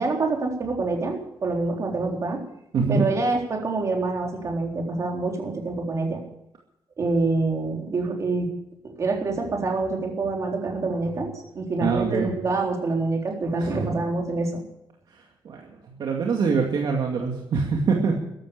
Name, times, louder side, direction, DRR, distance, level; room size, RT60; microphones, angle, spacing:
voice 1, 0.0-2.4 2.9-6.2 7.0-8.5 9.0-14.6, right 3 dB, 35° right, 0 dB, 3.9 m, -26 dB
voice 2, 2.7-3.1 11.8-12.3 13.6-13.7 15.4-18.2, right 5 dB, 60° right, 0 dB, 2.3 m, -24 dB
14.0 x 11.5 x 8.4 m, 0.78 s
wide cardioid pair, 170°, 9 cm